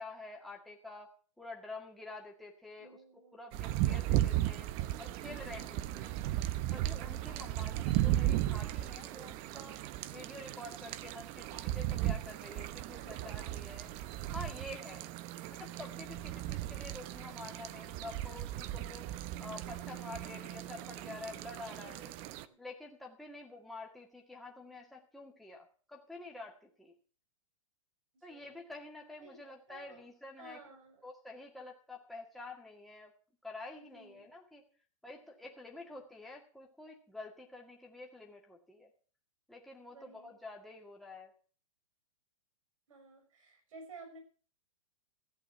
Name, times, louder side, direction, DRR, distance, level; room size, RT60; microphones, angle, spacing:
voice 1, 0.0-3.0 3.3-4.7 5.0-6.2 6.7-9.8 10.1-13.9 14.3-15.1 15.5-19.1 19.4-22.2 22.6-26.9 28.2-30.6 31.0-33.1 33.4-34.6 35.0-38.9 39.5-41.3, left 2 dB, ahead, -2 dB, 2.0 m, -48 dB
voice 2, 2.8-3.4 13.0-13.5 19.3-20.2 21.8-22.6 28.1-28.6 29.2-29.3 29.7-30.0 30.4-31.0 33.8-34.3 39.9-40.4 42.9-44.2, right 3 dB, 75° right, 6 dB, 6.5 m, -55 dB
sound 1, 3.5-22.4, right 14 dB, 35° right, 0.8 m, -36 dB
14.5 x 8.5 x 6.8 m, 0.41 s
hypercardioid pair, 145°, 17 cm